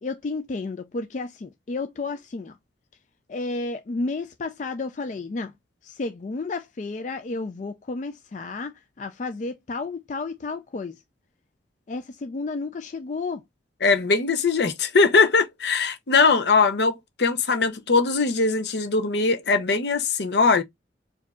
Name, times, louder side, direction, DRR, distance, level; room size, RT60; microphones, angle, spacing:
voice 1, 0.0-2.6 3.3-5.5 5.8-11.0 11.9-13.4, left 3 dB, 40° left, 0.3 m, -32 dB
voice 2, 13.8-20.6, left 4 dB, 70° left, 0.7 m, -21 dB
4.7 x 2.6 x 2.3 m
head